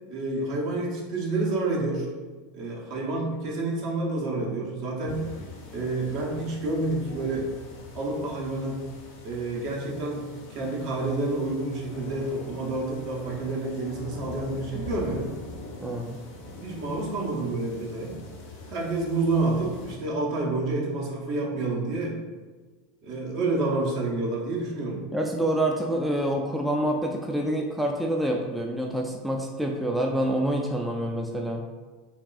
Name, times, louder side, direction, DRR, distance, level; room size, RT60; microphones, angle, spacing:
voice 1, 0.0-2.1 2.5-5.2 5.7-7.5 7.9-8.8 9.2-15.3 16.6-18.2 18.7-22.2 23.0-25.0, right 2 dB, 55° right, -2 dB, 0.8 m, -29 dB
sound 1, 5.1-20.0, left 2 dB, 65° left, 0.7 m, -43 dB
voice 2, 15.8-16.2 25.1-31.6, right 1 dB, 5° right, 0 dB, 0.3 m, -27 dB
3.5 x 2.3 x 2.3 m, 1.3 s
hypercardioid pair, 95°, 0 cm